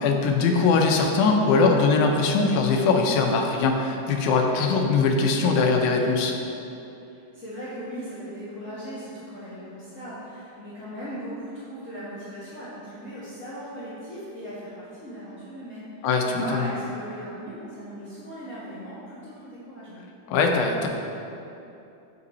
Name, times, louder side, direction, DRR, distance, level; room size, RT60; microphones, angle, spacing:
voice 1, 0.0-6.4 16.0-16.7 20.3-20.9, left 4 dB, 85° left, 2 dB, 2.2 m, -21 dB
voice 2, 7.0-20.0, equal, 60° left, -11 dB, 0.8 m, -38 dB
7.5 x 5.4 x 4.1 m, 2.8 s
omnidirectional pair, 3.5 m